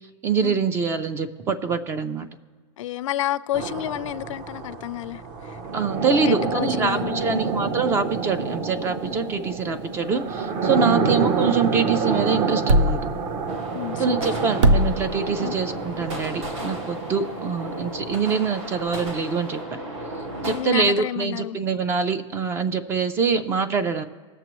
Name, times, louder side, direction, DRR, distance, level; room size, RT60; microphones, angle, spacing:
voice 1, 0.2-2.3 5.7-13.0 14.0-19.8 20.4-24.1, right 5 dB, 15° right, 0.3 m, -24 dB
voice 2, 2.8-5.6 6.1-7.4 10.9-11.1 13.7-14.3 15.4-15.5 20.4-21.6 23.8-24.1, left 13 dB, 75° left, 0.4 m, -30 dB
sound 1, 3.5-17.4, right 5 dB, 35° right, 0.8 m, -28 dB
sound 2, 6.8-19.6, equal, 85° right, 0.7 m, -29 dB
sound 3, 13.5-20.6, right 1 dB, 65° right, 2.6 m, -34 dB
19.5 x 6.7 x 3.0 m
supercardioid pair, 155°, 16 cm